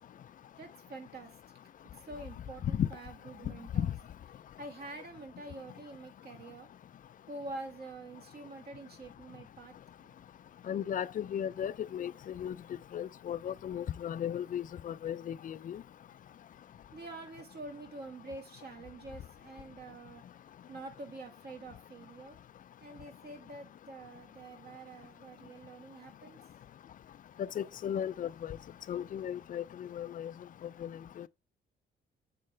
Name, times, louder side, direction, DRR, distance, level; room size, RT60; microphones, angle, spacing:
voice 1, 0.6-1.6 2.0-3.9 4.6-6.7 7.3-9.7 16.9-20.2 20.7-22.4 22.8-26.4, right 2 dB, 55° right, 1.7 m, -46 dB
voice 2, 10.7-12.6 12.9-15.8 27.6-28.6 28.9-30.3 30.8-30.9 31.2-31.3, left 9 dB, 45° left, 0.4 m, -35 dB
7.5 x 4.8 x 3.2 m
cardioid pair, 90°, 20 cm